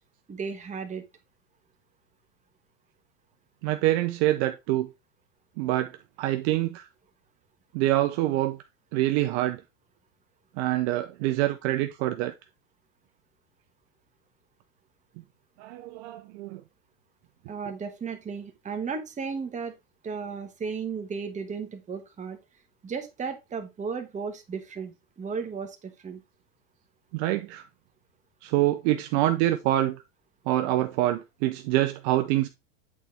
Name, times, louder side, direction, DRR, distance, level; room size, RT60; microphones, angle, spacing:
voice 1, 0.3-1.0 17.5-19.8 20.0-22.4 22.8-26.2, right 5 dB, 15° right, 1.3 m, -34 dB
voice 2, 3.6-4.9 5.6-6.9 7.7-8.6 8.9-9.6 10.6-12.3 15.6-16.6 27.1-27.6 28.4-30.0 30.5-32.5, right 15 dB, 50° right, 0.7 m, -25 dB
8.5 x 4.2 x 3.4 m
supercardioid pair, 130°, 43 cm